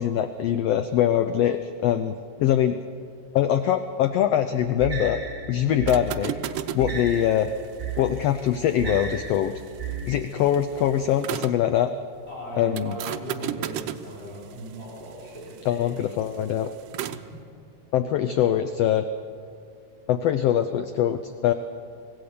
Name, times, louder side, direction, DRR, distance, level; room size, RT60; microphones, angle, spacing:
voice 1, 0.0-2.8 3.3-5.2 5.5-6.3 6.7-7.5 8.0-9.5 10.1-11.9 12.6-12.9 15.6-16.7 17.9-19.0 20.1-21.5, left 10 dB, 80° left, 10 dB, 1.4 m, -23 dB
sound 1, 4.8-10.2, right 4 dB, 30° right, 2.0 m, -34 dB
sound 2, 5.7-11.7 12.8-17.3, right 11 dB, 85° right, 1.3 m, -37 dB
voice 2, 12.3-15.9 17.1-17.4, right 1 dB, 20° left, -5 dB, 4.4 m, -38 dB
25.0 x 17.0 x 6.9 m, 2.3 s
omnidirectional pair, 3.6 m